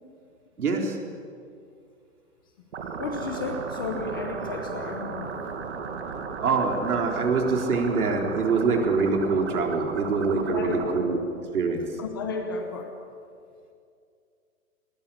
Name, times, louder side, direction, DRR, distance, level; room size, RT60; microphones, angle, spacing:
voice 1, 0.6-1.0 6.4-11.2 11.5-12.0, right 4 dB, 80° right, 2 dB, 4.1 m, -24 dB
sound 1, 2.7-11.0, right 5 dB, 50° right, 2.3 m, -35 dB
voice 2, 3.0-5.5 10.5-11.2 12.0-12.9, left 4 dB, 15° left, 4 dB, 0.8 m, -33 dB
20.5 x 18.5 x 8.7 m, 2.4 s
hypercardioid pair, 180°, 44 cm